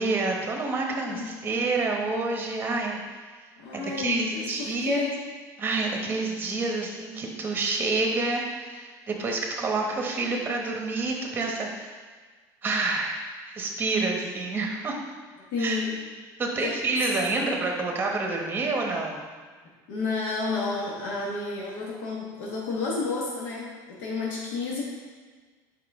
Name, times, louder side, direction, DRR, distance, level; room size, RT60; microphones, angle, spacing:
voice 1, 0.0-3.0 3.7-5.0 5.6-11.9 12.6-13.2 13.5-15.0 15.6-15.8 16.4-19.3, right 3 dB, 20° right, 1 dB, 1.0 m, -28 dB
voice 2, 3.6-5.2 15.5-16.0 16.6-16.8 19.9-24.8, left 4 dB, 80° left, -4 dB, 1.2 m, -31 dB
5.7 x 5.0 x 3.5 m, 1.4 s
cardioid pair, 140°, 9 cm